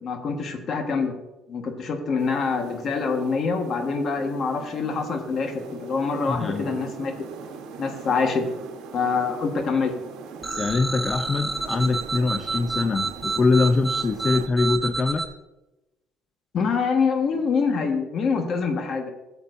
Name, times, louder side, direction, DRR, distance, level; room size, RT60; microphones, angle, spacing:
voice 1, 0.0-1.1 1.5-7.1 7.8-8.4 8.9-10.0 16.5-19.1, left 5 dB, 50° left, 5 dB, 1.4 m, -25 dB
sound 1, 2.2-14.5, right 6 dB, 80° right, 1.1 m, -41 dB
voice 2, 6.3-6.8 10.6-15.3, left 3 dB, 30° left, 8 dB, 0.5 m, -23 dB
sound 2, 10.4-15.3, right 3 dB, 5° right, 1.2 m, -29 dB
14.0 x 7.1 x 2.6 m, 1.0 s
cardioid pair, 95°, 0 cm